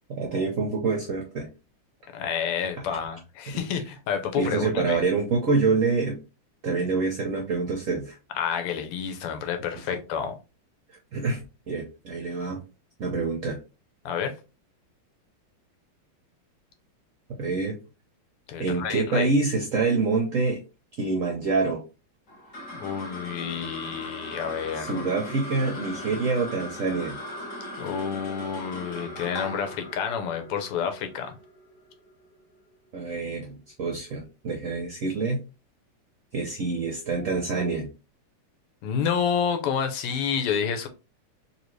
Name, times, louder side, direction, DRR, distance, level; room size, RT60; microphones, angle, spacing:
voice 1, 0.1-1.5 3.5-3.6 4.4-6.2 6.6-8.2 10.9-12.6 13.0-13.6 17.4-17.8 18.6-20.6 21.0-21.8 24.8-27.2 32.9-35.4 36.3-37.9, right 4 dB, 60° right, 0 dB, 0.8 m, -26 dB
voice 2, 2.1-5.0 8.3-10.3 14.0-14.4 18.5-19.3 22.7-25.0 27.8-31.4 38.8-40.9, left 7 dB, 90° left, 6 dB, 1.7 m, -29 dB
sound 1, 22.3-32.9, left 1 dB, 40° left, 1.4 m, -39 dB
4.0 x 2.8 x 3.1 m, 0.30 s
omnidirectional pair, 2.4 m